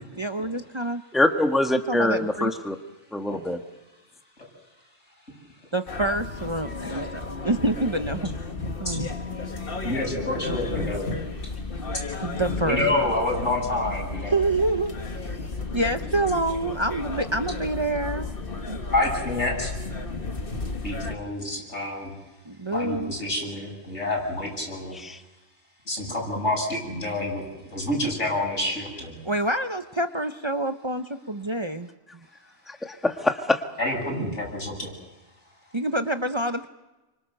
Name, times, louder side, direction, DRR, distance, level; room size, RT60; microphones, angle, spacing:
voice 1, 0.2-1.0 1.9-2.5 5.7-8.2 8.8-9.1 12.2-13.0 14.3-14.9 15.7-18.3 18.7-18.8 22.5-23.1 29.2-31.9 35.7-36.7, right 2 dB, 25° right, 7 dB, 0.9 m, -27 dB
voice 2, 1.1-2.7 3.1-3.6 24.9-25.2 32.7-33.6, left 1 dB, ahead, 5 dB, 1.4 m, -24 dB
sound 1, 5.9-21.2, left 3 dB, 50° left, 1.8 m, -33 dB
voice 3, 9.8-11.1 11.4-11.5 12.6-14.4 18.9-19.7 20.8-22.2 22.7-24.9 25.9-27.4 27.7-29.2 33.8-34.9, left 1 dB, 85° left, -1 dB, 8.6 m, -28 dB
29.5 x 25.5 x 6.8 m, 1.1 s
omnidirectional pair, 1.2 m